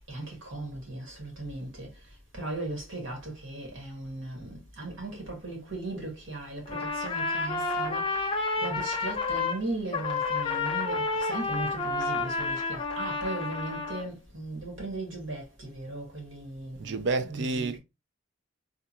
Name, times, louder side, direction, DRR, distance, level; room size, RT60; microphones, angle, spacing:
voice 1, 0.1-1.9 2.3-17.8, right 2 dB, 85° right, 1.9 m, -37 dB
Trumpet, 6.7-9.6 9.9-14.0, left 3 dB, 25° left, 0.5 m, -30 dB
voice 2, 16.8-17.8, right 3 dB, 60° right, 0.4 m, -29 dB
3.6 x 2.3 x 2.7 m
head